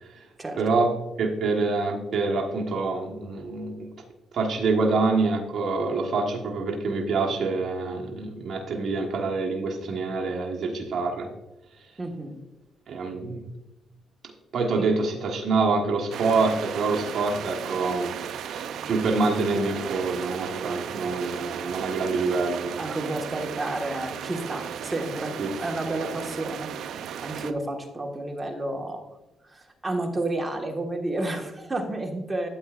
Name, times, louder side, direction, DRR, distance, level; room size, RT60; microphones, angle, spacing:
voice 1, 0.6-3.9 4.3-11.3 12.9-13.4 14.5-18.2 18.5-23.0 25.4-25.5, right 3 dB, 55° right, -1 dB, 1.3 m, -26 dB
voice 2, 12.0-12.4 14.8-14.9 22.8-26.7 27.2-29.0 29.4-32.5, right 2 dB, 20° right, 2 dB, 1.5 m, -31 dB
sound 1, 16.1-27.5, right 8 dB, 75° right, 0.5 m, -35 dB
12.5 x 8.4 x 2.4 m, 1.0 s
cardioid pair, 90°, 0 cm